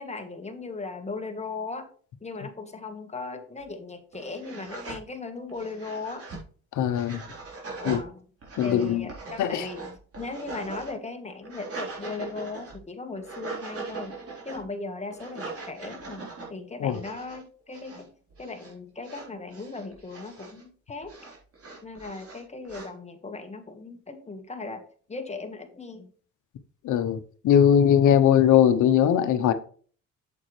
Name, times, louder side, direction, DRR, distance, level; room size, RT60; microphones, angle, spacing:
voice 1, 0.0-1.9 2.2-6.3 7.8-8.3 8.6-14.2 14.4-18.1 18.4-21.1 21.8-26.1, left 3 dB, 20° left, 1.6 m, -38 dB
sound 1, 3.6-3.7 4.1-5.0 5.5-6.4 6.9-8.0 8.4-10.9 11.3-12.8 13.2-14.6 15.1-16.5 16.9-17.4 17.7-18.0 18.3-18.7 19.0-20.6 21.0-22.9, right 3 dB, 50° right, 4.1 m, -40 dB
voice 2, 6.8-7.2 7.9-8.0 8.6-9.1 9.4-9.7 16.8-17.0 26.8-27.2 27.4-29.5, left 9 dB, 75° left, 0.9 m, -20 dB
8.6 x 7.7 x 3.2 m
cardioid pair, 90°, 30 cm